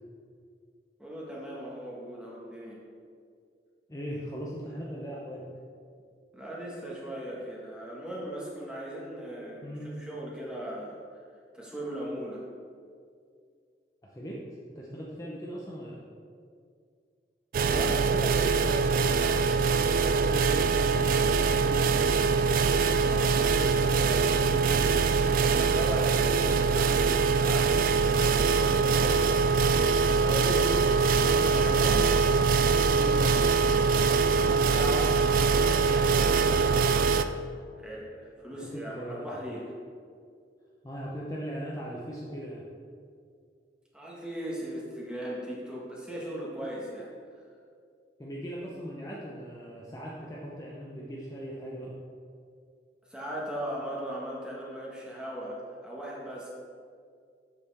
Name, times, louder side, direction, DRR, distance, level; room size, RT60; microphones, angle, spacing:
voice 1, 1.0-2.8 6.3-11.0 11.5-12.4 17.7-21.9 22.9-24.9 25.5-32.1 32.8-37.3 37.8-39.7 43.9-47.1 53.1-56.5, equal, 5° right, -5 dB, 1.5 m, -38 dB
voice 2, 3.9-5.4 9.6-9.9 14.0-14.4 14.8-16.0 21.4-21.8 23.0-23.3 26.2-26.4 33.1-33.4 38.7-39.3 40.8-42.6 48.2-51.9, equal, 20° left, -5 dB, 0.7 m, -39 dB
sound 1, 17.5-37.2, right 5 dB, 50° right, 0.3 m, -23 dB
8.3 x 6.6 x 3.5 m, 2.2 s
head